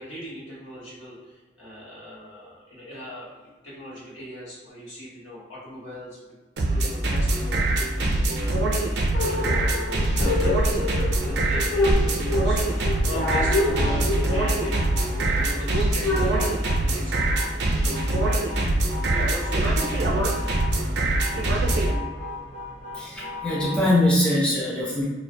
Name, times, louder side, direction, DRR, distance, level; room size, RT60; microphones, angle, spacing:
voice 1, 0.0-6.3 6.7-9.0 9.3-14.8 15.2-18.7 19.1-20.1, equal, 85° left, -7 dB, 1.1 m, -38 dB
sound 1, 6.6-21.9, right 2 dB, 65° right, 0.4 m, -23 dB
sound 2, 9.1-16.3, left 1 dB, 65° left, 1.0 m, -27 dB
sound 3, 14.4-23.9, left 2 dB, 35° left, 1.0 m, -38 dB
voice 2, 22.9-25.1, left 1 dB, 5° left, -6 dB, 0.4 m, -22 dB
2.5 x 2.1 x 2.5 m, 1.2 s
head